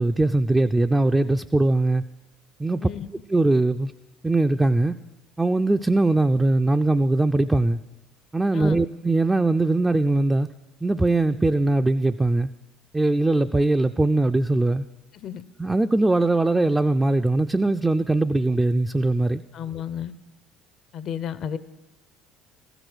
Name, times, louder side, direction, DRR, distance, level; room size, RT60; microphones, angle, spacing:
voice 1, 0.0-2.0 2.6-2.9 3.3-3.9 4.2-5.0 5.4-7.8 8.3-10.5 10.8-12.5 12.9-14.9 15.6-19.4, right 2 dB, 15° right, 0.3 m, -21 dB
voice 2, 2.8-3.1 8.5-8.8 15.1-15.4 19.5-20.1 20.9-21.6, left 9 dB, 55° left, 0.5 m, -32 dB
14.5 x 4.9 x 6.2 m
hypercardioid pair, 70°, 0 cm